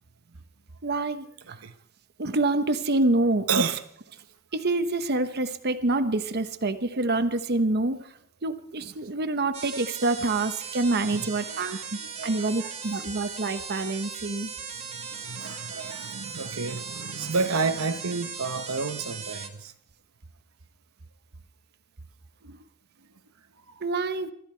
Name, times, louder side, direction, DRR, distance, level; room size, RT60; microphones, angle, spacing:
voice 1, 0.8-1.2 2.2-3.5 4.5-8.0 8.4-11.8 12.2-14.5 23.8-24.3, right 2 dB, 50° right, 1.0 m, -26 dB
voice 2, 3.5-3.8 11.1-12.9 15.1-19.7 22.4-22.6, right 4 dB, 85° right, 1.0 m, -31 dB
sound 1, 9.5-19.5, right 6 dB, 30° right, 2.0 m, -38 dB
24.0 x 13.0 x 4.5 m
head